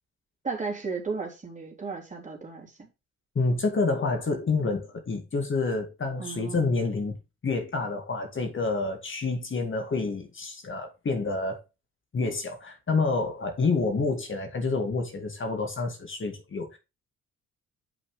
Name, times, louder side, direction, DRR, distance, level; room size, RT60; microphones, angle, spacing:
voice 1, 0.4-2.9 6.2-6.7, right 4 dB, 20° right, 3.4 m, -34 dB
voice 2, 3.4-7.1 7.4-11.6 12.1-16.8, left 3 dB, 35° left, 2.2 m, -28 dB
8.5 x 5.7 x 3.4 m
figure-of-eight pair, 50°, 36 cm